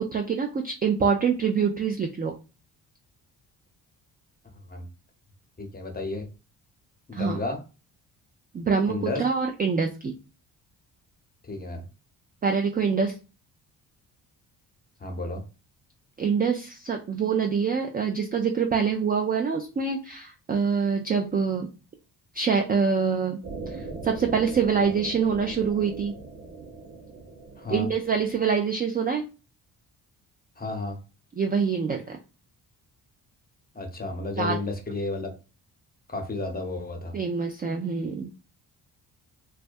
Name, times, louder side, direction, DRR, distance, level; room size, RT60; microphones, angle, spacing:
voice 1, 0.0-2.3 7.1-7.4 8.5-10.1 12.4-13.2 16.2-21.7 22.3-23.4 23.7-26.1 27.7-29.3 31.4-32.2 34.4-34.6 37.1-38.3, right 6 dB, 20° right, 4 dB, 0.3 m, -25 dB
voice 2, 5.6-6.3 7.1-7.6 8.9-9.3 11.5-11.9 15.0-15.4 27.6-27.9 30.6-31.0 33.7-35.3 36.1-37.2, left 2 dB, 20° left, 3 dB, 0.8 m, -32 dB
sound 1, 23.4-28.5, right 3 dB, 45° right, 0.8 m, -40 dB
2.3 x 2.1 x 2.6 m, 0.32 s
hypercardioid pair, 50°, 45 cm